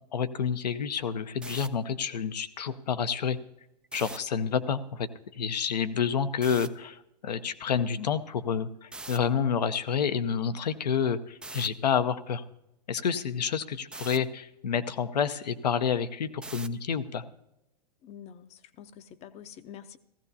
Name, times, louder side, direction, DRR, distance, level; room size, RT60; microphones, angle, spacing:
voice 1, 0.1-3.4 3.9-12.4 12.9-17.2, left 7 dB, 80° left, 0.8 m, -29 dB
sound 1, 1.4-1.7 3.8-4.2 6.4-6.7 8.9-9.2 11.4-11.7 13.9-14.2 16.4-16.8, right 3 dB, 5° right, 0.3 m, -41 dB
voice 2, 18.0-20.0, left 9 dB, 30° left, 0.7 m, -47 dB
16.5 x 15.0 x 2.8 m
hypercardioid pair, 105°, 21 cm